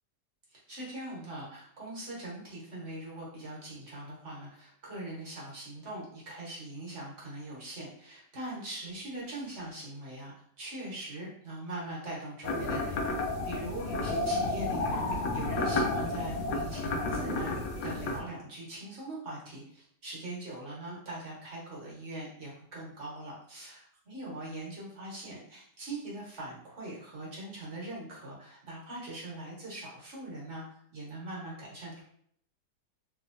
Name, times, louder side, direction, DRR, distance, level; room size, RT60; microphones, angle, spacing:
voice 1, 0.5-32.0, right 1 dB, 45° right, -5 dB, 1.1 m, -42 dB
sound 1, 12.4-18.2, left 2 dB, 85° left, 1.3 m, -31 dB
3.4 x 3.0 x 2.5 m, 0.65 s
omnidirectional pair, 1.9 m